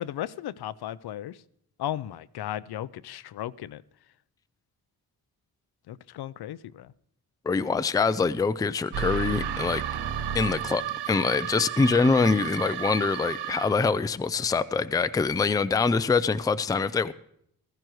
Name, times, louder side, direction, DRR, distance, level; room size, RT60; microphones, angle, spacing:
voice 1, 0.0-1.4 1.8-3.8 5.9-6.9, left 12 dB, 70° left, 0.5 m, -35 dB
voice 2, 7.5-9.8 10.3-17.1, left 4 dB, 10° left, 0.3 m, -24 dB
sound 1, 8.9-13.9, right 9 dB, 80° right, 0.7 m, -32 dB
15.5 x 14.0 x 3.1 m
cardioid pair, 75°, 40 cm